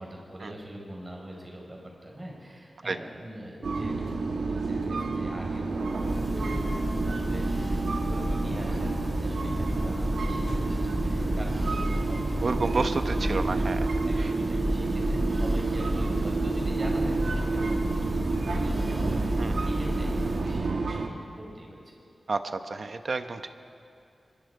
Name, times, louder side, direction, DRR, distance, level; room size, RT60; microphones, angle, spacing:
voice 1, 0.0-13.6 14.1-22.0, right 1 dB, 30° right, -1 dB, 5.4 m, -42 dB
sound 1, 3.6-21.1, right 3 dB, 80° right, 1.7 m, -30 dB
Church bell, 5.8-20.7, equal, ahead, 2.2 m, -31 dB
voice 2, 12.4-13.9 14.2-14.3 19.4-19.5 22.3-23.5, right 3 dB, 55° right, 8 dB, 1.1 m, -30 dB
25.5 x 23.0 x 4.9 m, 2.5 s
wide cardioid pair, 120°, 0 cm